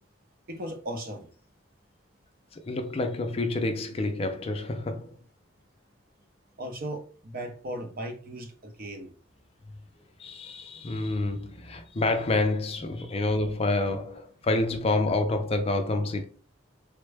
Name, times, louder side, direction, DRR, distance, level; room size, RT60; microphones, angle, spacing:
voice 1, 0.5-1.3 6.6-9.1, right 1 dB, 45° right, 0.7 m, -37 dB
voice 2, 2.5-5.2 10.2-16.2, left 2 dB, 30° left, 0.4 m, -28 dB
3.5 x 2.1 x 3.3 m
head